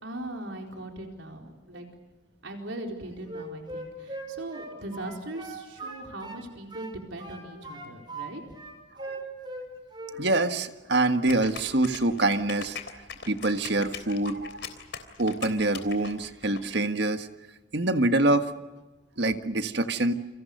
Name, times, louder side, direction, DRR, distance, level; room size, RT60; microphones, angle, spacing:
voice 1, 0.0-1.9 2.4-8.4, right 1 dB, 80° right, 2 dB, 4.3 m, -39 dB
Wind instrument woodwind instrument, 3.2-6.4 6.7-8.3 8.5-9.7 9.9-10.2, right 2 dB, 25° right, 5.6 m, -39 dB
voice 2, 10.1-12.8 13.3-14.6 15.2-17.3 17.7-18.5 19.2-20.1, right 2 dB, 60° right, 8 dB, 1.6 m, -25 dB
sound 1, 11.3-16.6, left 6 dB, 60° left, 3.4 m, -40 dB
29.5 x 26.0 x 6.7 m, 1.1 s
head